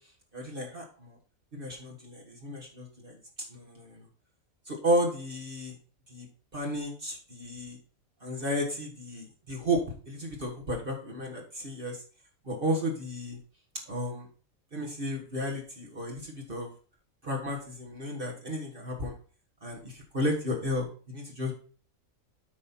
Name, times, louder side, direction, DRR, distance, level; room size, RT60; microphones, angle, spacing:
voice 1, 0.3-1.2 1.5-3.2 3.5-4.1 4.6-5.7 6.1-6.2 6.5-7.8 8.2-12.0 12.4-13.4 13.9-14.3 14.7-16.7 17.2-19.1 19.6-21.5, equal, 40° right, -1 dB, 1.8 m, -33 dB
8.4 x 5.5 x 4.3 m, 0.41 s
omnidirectional pair, 1.5 m